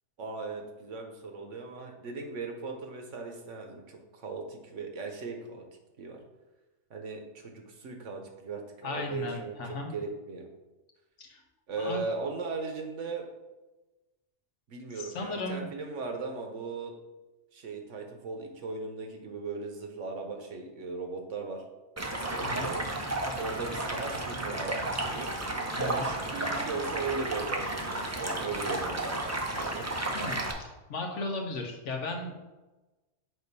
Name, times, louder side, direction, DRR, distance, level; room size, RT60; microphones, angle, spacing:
voice 1, 0.2-5.6 6.0-6.2 6.9-9.6 9.9-10.5 11.7-13.2 14.7-16.9 17.5-21.6 22.1-22.8 23.4-25.3 25.7-29.9, right 4 dB, 70° right, 3 dB, 1.3 m, -38 dB
voice 2, 8.8-9.9 11.2-11.4 11.8-12.0 15.0-15.7 22.4-22.7 25.8-26.0 30.1-30.4 30.9-32.4, left 2 dB, 70° left, 3 dB, 1.3 m, -35 dB
Stream, 22.0-30.5, right 2 dB, 20° right, 0.4 m, -33 dB
7.8 x 2.6 x 5.3 m, 1.1 s
omnidirectional pair, 1.3 m